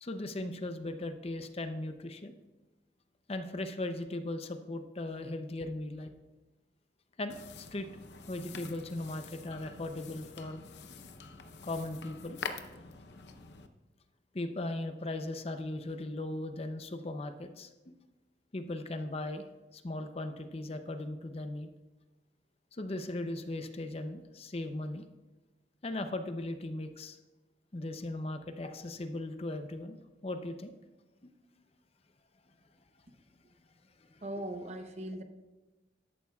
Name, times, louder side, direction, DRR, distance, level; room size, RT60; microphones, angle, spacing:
voice 1, 0.0-2.3 3.3-6.1 7.2-7.9 8.3-10.7 11.6-12.4 14.3-17.9 18.5-19.4 19.7-21.7 22.7-25.0 25.8-27.2 27.7-30.7 34.1-34.2, left 2 dB, 35° left, 8 dB, 0.6 m, -38 dB
sound 1, 7.3-13.7, left 5 dB, 70° left, 0.7 m, -46 dB
voice 2, 34.2-35.2, right 1 dB, 40° right, 7 dB, 0.8 m, -39 dB
13.0 x 11.0 x 2.4 m, 1.1 s
head